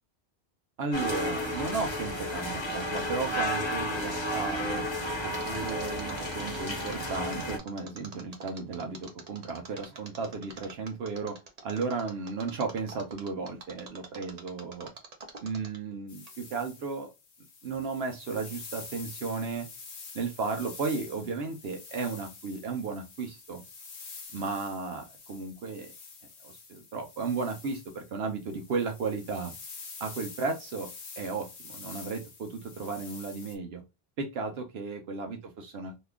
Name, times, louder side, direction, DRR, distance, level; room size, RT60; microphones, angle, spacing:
voice 1, 0.8-4.9 5.2-11.4 11.6-14.9 15.4-17.1 17.6-19.7 20.1-23.6 24.3-25.9 26.4-29.5 30.0-30.9 31.2-33.8 34.2-36.0, right 4 dB, 75° right, 3 dB, 0.9 m, -34 dB
sound 1, 0.9-7.6, equal, 25° left, 1.0 m, -32 dB
Mechanisms, 5.3-15.9 16.3-16.4, right 3 dB, 45° right, 0.7 m, -46 dB
sound 2, 16.1-33.6, left 4 dB, 55° left, 0.9 m, -47 dB
2.9 x 2.3 x 3.4 m, 0.25 s
omnidirectional pair, 1.1 m